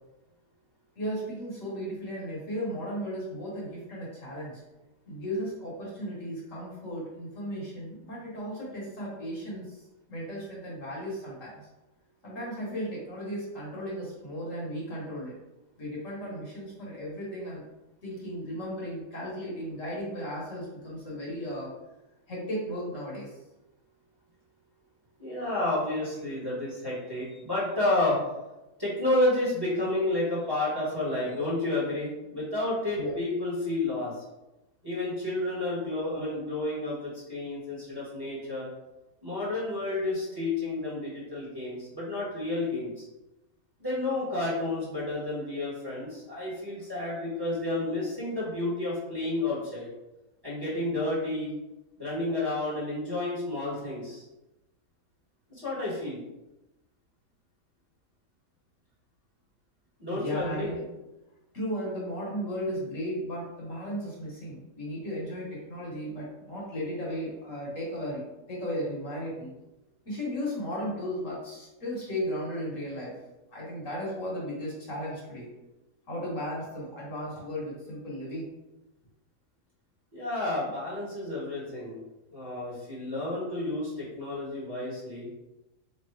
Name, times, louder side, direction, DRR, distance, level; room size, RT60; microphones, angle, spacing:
voice 1, 1.0-4.6 5.1-11.6 12.2-15.3 15.8-17.6 18.0-21.7 22.3-23.4 32.9-33.2 60.1-60.8 61.5-68.2 68.5-69.5 70.0-73.2 73.5-75.5 76.1-78.5, equal, 55° left, -5 dB, 1.5 m, -35 dB
voice 2, 25.2-28.2 28.8-34.1 34.8-38.7 39.2-43.0 43.8-49.9 50.4-51.5 52.0-54.2 55.5-56.2 60.0-60.7 80.1-82.0 82.3-85.3, left 2 dB, 15° right, -8 dB, 1.4 m, -30 dB
3.2 x 2.8 x 4.5 m, 0.98 s
omnidirectional pair, 1.7 m